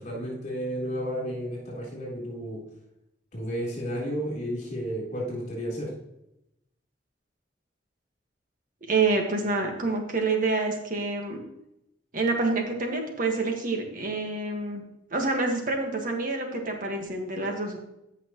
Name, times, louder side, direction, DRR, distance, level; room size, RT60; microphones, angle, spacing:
voice 1, 0.0-2.6 3.3-5.9, equal, 40° left, -4 dB, 3.7 m, -32 dB
voice 2, 8.9-11.4 12.1-14.8 15.1-17.8, right 3 dB, 45° right, 2 dB, 1.7 m, -27 dB
14.0 x 5.9 x 3.1 m, 0.83 s
head